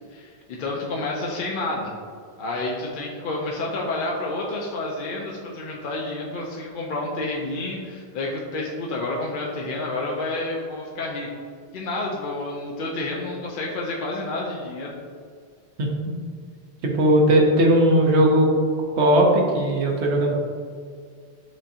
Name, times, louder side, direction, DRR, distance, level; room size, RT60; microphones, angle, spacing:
voice 1, 0.1-1.9 2.4-11.3 11.7-14.9, left 2 dB, 60° left, -2 dB, 0.6 m, -29 dB
voice 2, 16.8-18.5 19.0-20.4, right 1 dB, 85° right, 0 dB, 1.0 m, -18 dB
7.1 x 2.7 x 2.5 m, 2.1 s
omnidirectional pair, 1.1 m